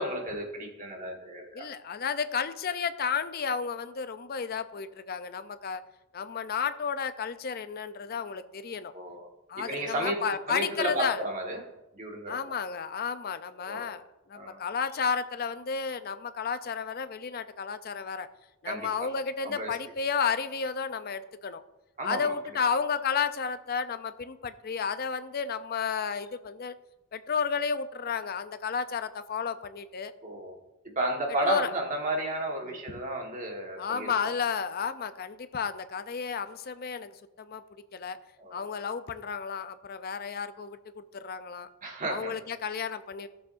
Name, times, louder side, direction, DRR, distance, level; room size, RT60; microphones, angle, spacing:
voice 1, 0.0-1.7 8.9-9.3 9.6-10.2 10.5-11.6 11.9-12.4 13.7-13.9 14.3-14.6 18.6-19.1 19.4-19.8 22.0-22.3 30.2-30.5 30.8-34.1 38.4-38.7 41.8-42.3, right 1 dB, 35° right, 1 dB, 1.5 m, -33 dB
voice 2, 1.5-5.8 6.1-8.9 9.5-11.2 12.3-14.0 14.3-18.3 18.6-21.6 22.0-26.7 27.1-30.1 31.4-31.7 32.6-32.8 33.8-37.6 37.9-38.2 38.5-41.7 42.1-43.3, left 6 dB, 45° left, 11 dB, 0.5 m, -32 dB
15.5 x 7.0 x 2.6 m, 0.97 s
head